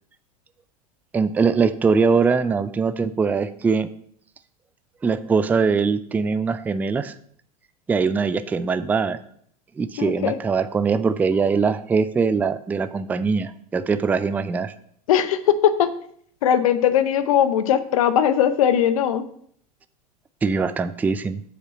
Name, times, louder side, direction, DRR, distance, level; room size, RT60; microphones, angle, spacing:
voice 1, 1.1-3.9 5.0-7.1 7.9-9.2 9.8-14.7 20.4-21.4, right 5 dB, 10° right, 13 dB, 0.3 m, -22 dB
voice 2, 10.0-10.4 15.1-15.9 16.4-19.3, left 9 dB, 60° left, 12 dB, 0.7 m, -19 dB
7.5 x 5.0 x 4.2 m, 0.63 s
figure-of-eight pair, 80°, 20 cm